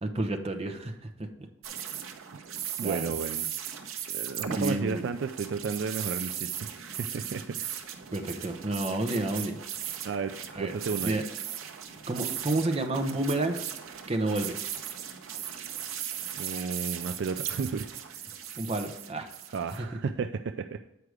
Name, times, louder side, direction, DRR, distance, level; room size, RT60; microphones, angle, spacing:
voice 1, 0.0-1.3 2.8-3.1 4.5-5.0 8.1-9.6 10.5-10.7 11.0-11.2 12.1-13.7 14.1-14.6 18.6-19.3 19.8-19.9, right 2 dB, 30° right, 5 dB, 0.8 m, -30 dB
sound 1, 1.6-19.8, right 9 dB, 85° right, 0.8 m, -38 dB
voice 2, 2.8-3.5 4.1-7.8 10.0-11.2 16.4-17.9 18.1-18.2 19.5-20.8, right 5 dB, 55° right, 8 dB, 0.3 m, -33 dB
8.0 x 4.8 x 4.8 m, 0.86 s
head